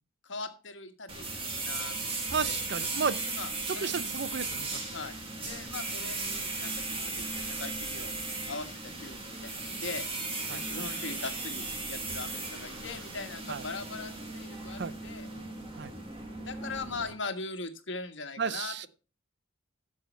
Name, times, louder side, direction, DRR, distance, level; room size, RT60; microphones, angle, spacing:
voice 1, 0.2-2.6 3.3-4.1 4.9-5.1 5.4-8.1 8.5-10.1 10.5-15.3 16.2-18.9, left 3 dB, 65° left, 1.5 m, -41 dB
sound 1, 1.1-17.1, right 3 dB, 30° right, 2.0 m, -36 dB
voice 2, 2.3-3.2 3.7-4.8 10.5-10.6 13.5-13.6 14.8-14.9 15.8-15.9 18.4-18.9, right 6 dB, 60° right, 0.5 m, -33 dB
sound 2, 10.5-11.7 12.0-15.0, equal, 10° right, 4.1 m, -55 dB
12.0 x 7.2 x 4.5 m
head